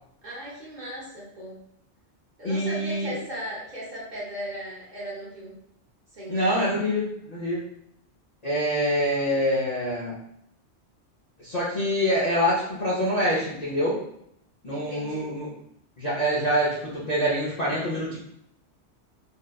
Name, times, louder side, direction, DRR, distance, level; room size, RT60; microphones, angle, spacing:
voice 1, 0.2-1.6 2.4-5.5 6.1-6.6 14.7-15.4, equal, 45° right, -6 dB, 0.8 m, -37 dB
voice 2, 2.4-3.1 6.3-7.6 8.4-10.2 11.4-14.0 14.6-15.5 16.0-18.2, equal, 50° left, -7 dB, 0.5 m, -25 dB
2.8 x 2.2 x 2.2 m, 0.75 s
omnidirectional pair, 1.2 m